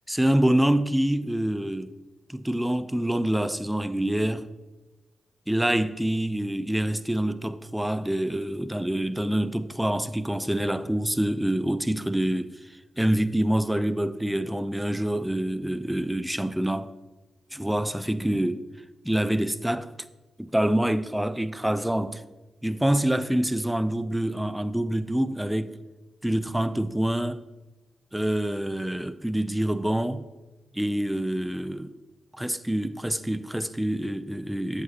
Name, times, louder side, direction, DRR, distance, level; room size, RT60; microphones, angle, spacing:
voice 1, 0.1-1.9 2.3-4.5 5.5-12.7 13.0-16.9 17.5-18.6 19.0-19.9 20.4-22.2 22.6-25.7 26.2-27.4 28.1-30.3 30.7-31.9 32.3-34.8, right 1 dB, 5° right, 0.5 m, -26 dB
7.9 x 7.8 x 2.9 m
supercardioid pair, 45°, 0 cm